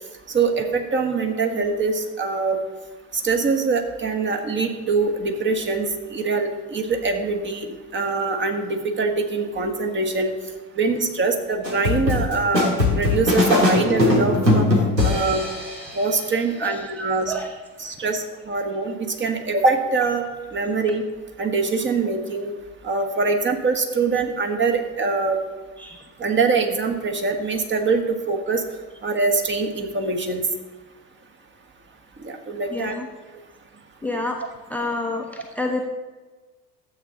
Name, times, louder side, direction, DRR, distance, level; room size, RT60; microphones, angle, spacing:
voice 1, 0.3-2.6 3.2-7.7 7.9-10.3 10.7-14.6 15.0-15.4 15.9-17.3 17.8-20.2 20.5-21.0 21.4-22.5 22.8-25.4 26.2-28.6 29.0-30.4 32.2-33.0, right 4 dB, 25° right, 4 dB, 1.4 m, -23 dB
sound 1, 11.6-16.0, left 2 dB, 90° right, 2.0 m, -20 dB
voice 2, 32.7-33.1 34.0-34.4 34.7-35.9, left 2 dB, 5° left, 3 dB, 0.9 m, -28 dB
12.5 x 8.0 x 3.9 m, 1.2 s
figure-of-eight pair, 70°, 49 cm